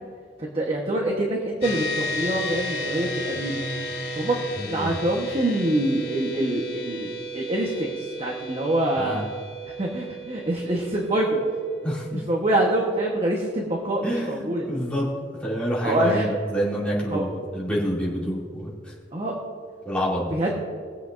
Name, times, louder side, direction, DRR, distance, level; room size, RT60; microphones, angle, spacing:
voice 1, 0.4-3.6 4.2-4.4 4.7-9.3 9.8-11.4 12.1-14.7 15.8-16.3 17.1-17.2 19.1-19.3 20.3-20.6, right 1 dB, 30° right, -1 dB, 1.1 m, -25 dB
sound 1, 1.6-15.2, equal, 55° left, 2.9 m, -35 dB
voice 2, 4.6-4.9 9.0-9.2 11.8-12.2 14.0-15.1 15.4-18.7 19.8-20.3, equal, 5° left, -7 dB, 2.6 m, -27 dB
21.5 x 7.8 x 2.6 m, 2.2 s
head